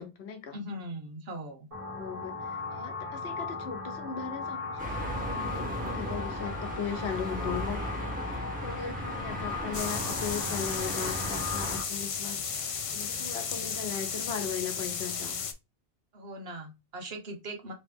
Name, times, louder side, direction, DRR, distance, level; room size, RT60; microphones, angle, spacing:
voice 1, 0.0-0.6 2.0-12.4 12.9-15.4, left 7 dB, 85° left, 6 dB, 1.1 m, -38 dB
voice 2, 0.5-1.7 16.1-17.7, right 1 dB, 75° right, 2 dB, 1.3 m, -40 dB
sound 1, 1.7-11.8, left 4 dB, 35° right, 1.4 m, -38 dB
cars on Maslennikova, 4.8-11.8, equal, 10° right, 1.1 m, -36 dB
sound 2, 9.7-15.5, left 6 dB, 50° left, 0.4 m, -34 dB
3.2 x 3.0 x 3.3 m, 0.23 s
omnidirectional pair, 1.0 m